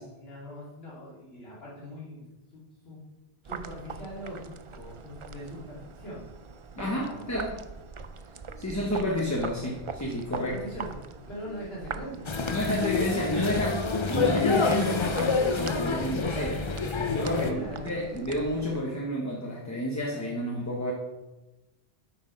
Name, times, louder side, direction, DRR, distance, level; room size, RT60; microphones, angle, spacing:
voice 1, 0.0-2.3 2.5-3.0 3.4-6.2 6.8-7.6 8.3-8.4 8.7-8.9 10.4-12.3 13.2-13.4 17.4-18.0, equal, 60° left, -7 dB, 2.9 m, -42 dB
sound 1, 3.4-18.8, right 5 dB, 50° right, 0.3 m, -43 dB
voice 2, 6.8-7.5 8.6-10.5 12.5-16.6 17.1-20.9, left 1 dB, 15° left, -1 dB, 1.0 m, -30 dB
sound 2, 11.1-16.1 16.4-18.0, right 1 dB, 75° right, 1.6 m, -52 dB
sound 3, 12.3-17.5, left 4 dB, 35° left, 0.5 m, -27 dB
8.6 x 6.3 x 5.2 m, 1.0 s
omnidirectional pair, 1.1 m